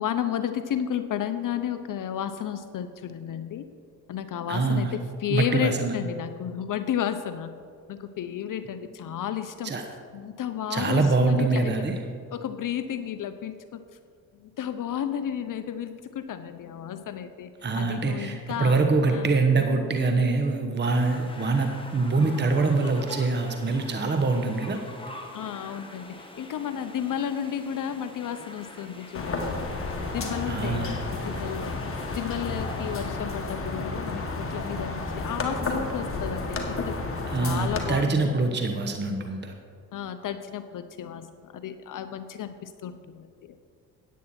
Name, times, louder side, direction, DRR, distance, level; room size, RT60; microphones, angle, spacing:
voice 1, 0.0-3.6 4.1-7.5 7.9-9.7 10.1-11.9 12.3-13.8 14.4-17.5 17.8-18.8 19.1-19.4 25.3-29.7 30.1-31.8 32.1-37.0 37.4-38.7 39.9-43.6, left 9 dB, 50° left, 10 dB, 0.7 m, -32 dB
voice 2, 4.5-4.9 5.3-5.9 9.6-9.9 10.7-12.0 17.6-24.8 30.5-31.0 37.3-39.5, right 3 dB, 25° right, 5 dB, 1.0 m, -24 dB
sound 1, 20.8-33.0, left 1 dB, 15° left, 1.6 m, -44 dB
sound 2, 29.1-37.9, left 3 dB, 35° left, 1.7 m, -32 dB
9.4 x 9.2 x 4.3 m, 2.2 s
supercardioid pair, 65°, 40 cm